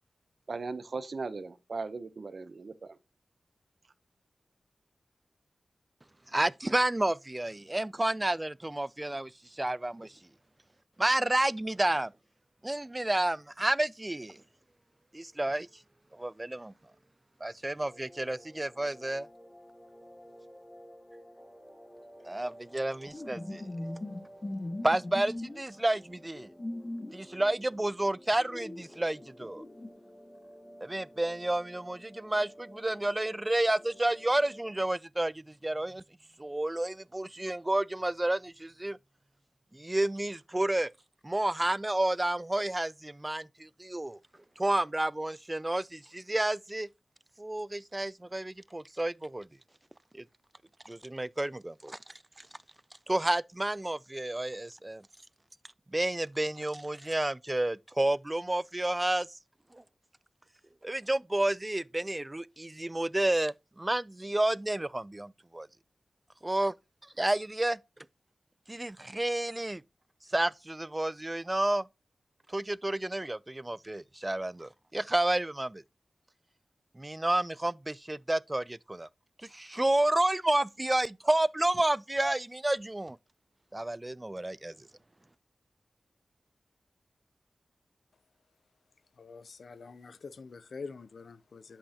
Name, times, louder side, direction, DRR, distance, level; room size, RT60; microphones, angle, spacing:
voice 1, 0.5-3.0, right 4 dB, 65° right, 0.7 m, -38 dB
voice 2, 6.3-10.2 11.0-12.1 12.6-14.4 15.1-15.7 16.1-16.7 17.4-19.3 22.2-23.7 24.8-26.5 27.1-29.6 30.8-36.0 36.4-39.0 39.7-40.9 41.2-44.2 44.6-46.9 47.4-49.5 50.1-50.2 50.9-52.0 52.4-52.5 53.1-55.0 55.9-59.3 59.7-59.8 60.8-65.7 66.4-66.7 67.2-67.8 68.7-69.8 70.3-71.9 72.5-75.8 77.0-79.1 79.4-83.2 83.7-84.7, right 1 dB, 25° right, 0.3 m, -30 dB
sound 1, 17.8-34.9, equal, 15° left, 1.6 m, -53 dB
sound 2, 23.1-25.6 26.2-27.2 28.4-29.9, left 1 dB, 35° left, 1.0 m, -39 dB
voice 3, 89.2-91.8, left 4 dB, 80° left, 0.5 m, -45 dB
8.4 x 5.5 x 2.8 m
cardioid pair, 55°, 0 cm